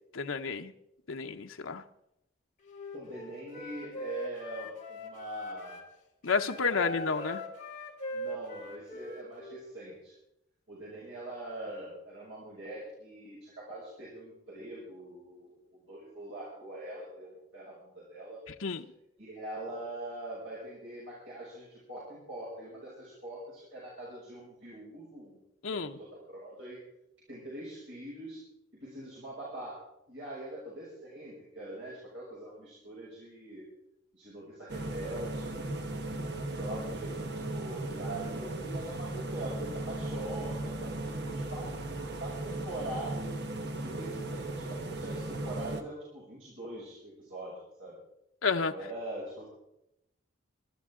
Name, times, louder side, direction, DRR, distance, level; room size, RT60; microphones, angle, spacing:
voice 1, 0.1-0.7 1.1-1.8 6.2-7.4 18.6-18.9 25.6-26.0 48.4-48.7, left 5 dB, 85° left, 0.9 m, -30 dB
Wind instrument woodwind instrument, 2.6-5.9 6.2-9.6, equal, 40° left, 3.0 m, -41 dB
voice 2, 2.9-5.8 6.5-7.3 8.1-10.1 10.7-15.6 15.9-18.4 19.2-25.4 25.7-26.8 27.3-28.4 28.8-33.6 34.1-35.7 36.2-43.3 43.8-48.0 48.7-49.4, right 1 dB, 75° right, 6.5 m, -43 dB
sound 1, 34.7-45.8, right 2 dB, 55° right, 1.3 m, -37 dB
25.0 x 12.5 x 3.8 m
head